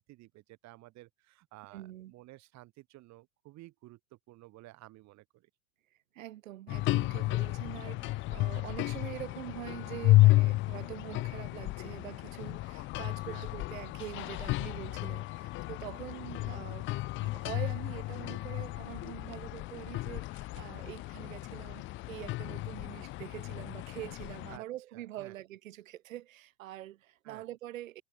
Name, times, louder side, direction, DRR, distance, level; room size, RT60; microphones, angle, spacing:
voice 1, 0.0-5.5 10.7-10.9 13.3-13.5 16.2-16.5 24.5-24.6 24.9-25.4 27.2-27.4, right 18 dB, 45° right, 3.0 m, -53 dB
voice 2, 1.7-2.1 6.1-28.0, right 14 dB, 85° right, 4.0 m, -45 dB
sound 1, 6.7-24.6, left 19 dB, 30° left, 0.5 m, -32 dB
supercardioid pair, 120°, 39 cm